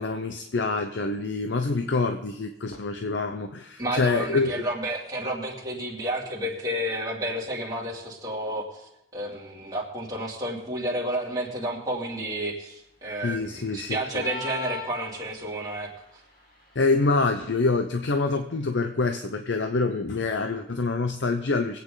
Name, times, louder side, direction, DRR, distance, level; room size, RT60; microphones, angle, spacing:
voice 1, 0.0-4.5 13.2-14.2 16.7-21.8, left 3 dB, 85° left, 7 dB, 0.7 m, -26 dB
voice 2, 3.8-15.9, right 1 dB, 20° right, -5 dB, 2.7 m, -31 dB
sound 1, 14.2-15.6, left 6 dB, 50° left, 2.8 m, -36 dB
23.0 x 8.6 x 3.9 m, 0.85 s
head